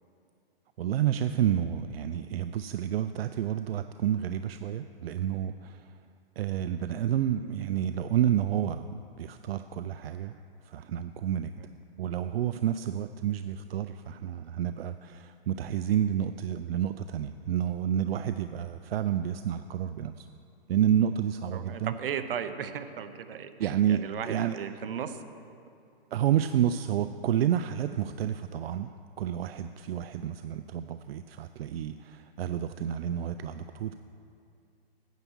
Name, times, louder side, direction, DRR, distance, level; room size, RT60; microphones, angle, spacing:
voice 1, 0.8-5.9 6.4-10.3 10.6-11.5 12.0-20.3 20.7-21.9 23.6-24.6 26.1-28.9 29.2-34.0, right 10 dB, 85° right, 10 dB, 0.5 m, -29 dB
voice 2, 21.5-25.2, right 8 dB, 70° right, 10 dB, 0.8 m, -36 dB
9.3 x 8.1 x 6.2 m, 2.5 s
hypercardioid pair, 155°, 29 cm